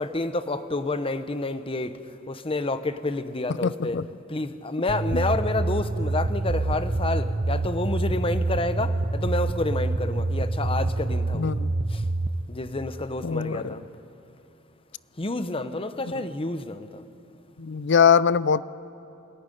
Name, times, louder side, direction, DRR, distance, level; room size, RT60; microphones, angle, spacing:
voice 1, 0.0-1.9 2.3-4.0 4.3-11.5 11.9-12.0 12.5-13.8 15.2-17.0, left 2 dB, 30° left, 11 dB, 0.9 m, -29 dB
voice 2, 3.6-4.1 5.1-5.2 11.3-11.7 13.2-13.7 17.6-18.6, left 6 dB, 60° left, 18 dB, 0.5 m, -22 dB
sound 1, 4.9-12.3, right 2 dB, 35° right, 0.7 m, -26 dB
22.5 x 18.5 x 10.0 m, 2.8 s
head